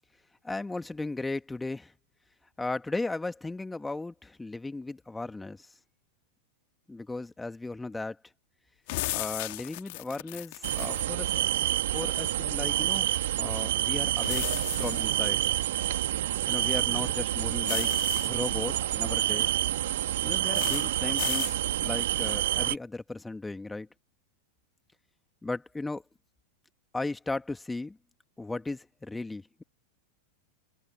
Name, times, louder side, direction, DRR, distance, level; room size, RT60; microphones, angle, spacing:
voice 1, 0.5-1.9 2.6-5.7 6.9-8.2 9.1-11.6 11.9-13.1 13.4-15.4 16.5-17.9 18.2-19.5 20.2-23.9 25.4-26.0 26.9-28.0 28.4-29.6, left 2 dB, 10° left, 2.2 m, -36 dB
sound 1, 8.9-11.1 14.2-15.2 17.7-18.3 20.5-20.9 21.2-21.6, left 24 dB, 50° left, 2.7 m, -35 dB
sound 2, 10.6-22.7, right 13 dB, 55° right, 2.0 m, -28 dB
open air
figure-of-eight pair, 90°, 0 cm